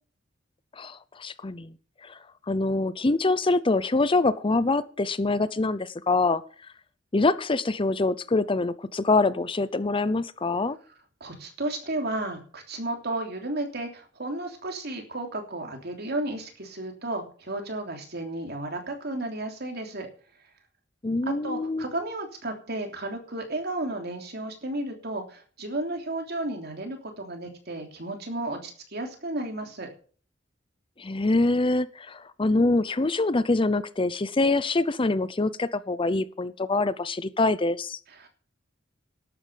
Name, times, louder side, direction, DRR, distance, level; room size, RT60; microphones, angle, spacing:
voice 1, 0.8-1.7 2.0-2.2 2.5-6.4 7.1-10.8 21.0-21.8 31.0-38.0, left 2 dB, 25° left, 15 dB, 0.6 m, -25 dB
voice 2, 11.2-20.1 21.3-29.9 38.1-38.3, right 2 dB, 60° right, 3 dB, 3.2 m, -33 dB
12.0 x 8.6 x 7.4 m, 0.42 s
head